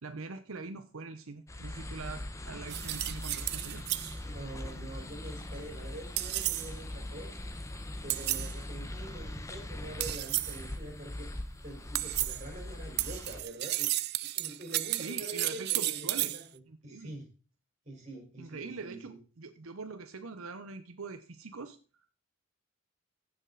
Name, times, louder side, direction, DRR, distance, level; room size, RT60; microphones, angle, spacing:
voice 1, 0.0-3.8 14.9-16.3 16.7-17.1 18.4-22.1, right 4 dB, 85° right, 9 dB, 0.8 m, -43 dB
sound 1, 1.5-13.4, left 1 dB, 15° left, 0.9 m, -41 dB
sound 2, 2.7-4.2 6.2-6.7 8.1-8.5 10.0-10.6 12.0-12.5 13.0-16.4, right 17 dB, 50° right, 0.4 m, -33 dB
voice 2, 4.3-7.3 8.0-11.3 11.6-13.9 14.4-17.3 17.8-19.2, right 1 dB, 35° right, 1 dB, 4.5 m, -45 dB
15.5 x 6.2 x 4.0 m, 0.35 s
head